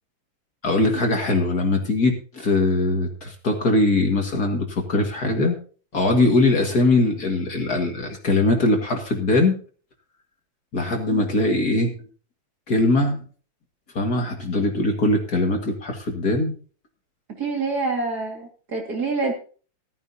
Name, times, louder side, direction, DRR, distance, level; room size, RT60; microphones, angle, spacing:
voice 1, 0.6-5.6 5.9-9.6 10.7-12.0 12.7-13.2 13.9-16.5, left 2 dB, 45° left, 3 dB, 2.3 m, -21 dB
voice 2, 17.4-19.3, right 3 dB, 45° right, 1 dB, 2.6 m, -26 dB
14.0 x 14.0 x 2.8 m, 0.40 s
omnidirectional pair, 2.4 m